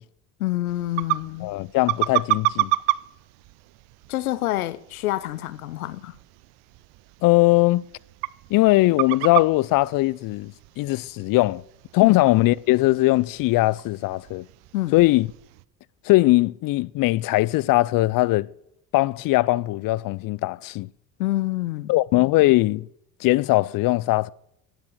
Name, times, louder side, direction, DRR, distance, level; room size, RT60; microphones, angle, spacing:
voice 1, 0.4-1.5 4.1-6.2 12.0-12.2 14.7-15.0 21.2-21.9, left 16 dB, 85° left, 0.8 m, -27 dB
sound 1, 0.7-15.7, right 19 dB, 65° right, 0.6 m, -32 dB
voice 2, 1.4-2.7 7.2-7.8 8.5-11.6 11.9-14.4 14.9-15.3 16.0-18.5 18.9-20.9 21.9-22.9 23.2-24.3, left 19 dB, 55° left, 0.5 m, -20 dB
12.5 x 9.5 x 6.4 m
hypercardioid pair, 65°, 42 cm